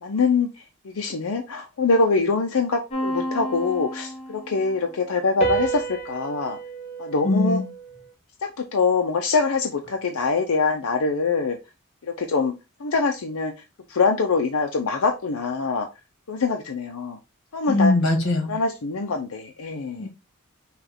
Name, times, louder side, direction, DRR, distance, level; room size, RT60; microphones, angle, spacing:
voice 1, 0.0-6.6 7.0-7.6 8.4-11.6 12.0-12.5 12.8-13.5 13.9-15.9 16.3-17.2 17.5-17.9 18.5-20.1, left 4 dB, 85° left, 3 dB, 0.6 m, -24 dB
sound 1, 2.9-4.7 5.4-8.0, right 3 dB, 30° left, 1.2 m, -30 dB
voice 2, 7.2-7.7 17.7-18.5 20.0-20.1, left 2 dB, 55° left, 3 dB, 1.7 m, -21 dB
5.7 x 2.4 x 3.5 m, 0.27 s
head